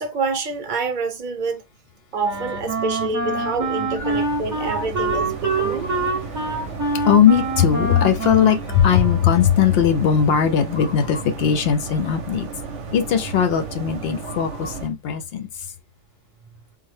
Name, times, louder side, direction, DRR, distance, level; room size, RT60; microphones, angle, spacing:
voice 1, 0.0-1.6 2.1-5.9, right 4 dB, 50° right, 0.7 m, -27 dB
Wind instrument woodwind instrument, 2.2-9.6, right 3 dB, 25° right, 0.4 m, -26 dB
sound 1, 2.3-14.9, right 5 dB, 80° right, 0.9 m, -34 dB
sound 2, 4.1-14.9, left 2 dB, 45° left, 1.0 m, -42 dB
voice 2, 6.3-12.5 12.9-15.5, left 8 dB, 65° left, 0.7 m, -19 dB
3.6 x 2.1 x 3.2 m
omnidirectional pair, 1.2 m